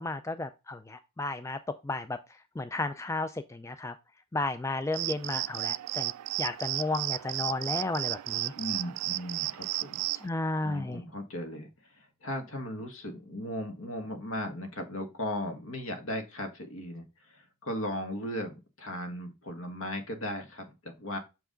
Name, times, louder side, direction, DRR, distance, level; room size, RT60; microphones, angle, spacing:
voice 1, 0.0-3.9 4.3-6.1 6.4-8.5 10.1-11.0, left 2 dB, 15° left, 10 dB, 0.3 m, -33 dB
sound 1, 4.9-10.3, right 18 dB, 90° right, 0.3 m, -33 dB
voice 2, 8.6-10.0 10.6-11.7 12.0-21.2, left 1 dB, 65° left, 6 dB, 1.6 m, -37 dB
6.9 x 4.8 x 3.8 m, 0.26 s
head